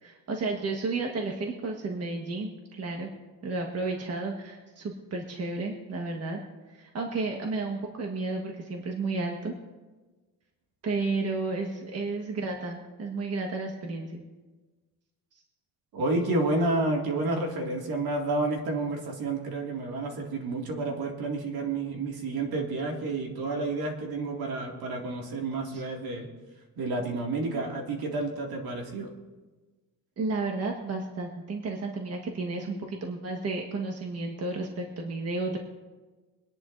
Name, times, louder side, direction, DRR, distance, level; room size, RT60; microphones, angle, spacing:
voice 1, 0.0-3.1 3.4-6.4 6.7-9.5 10.8-14.2 25.7-25.8 30.2-35.6, right 3 dB, 40° right, 1 dB, 1.4 m, -32 dB
voice 2, 15.9-26.3 26.8-29.1, right 2 dB, 60° right, 1 dB, 2.3 m, -30 dB
24.5 x 10.5 x 2.6 m, 1.3 s
cardioid pair, 150°, 40 cm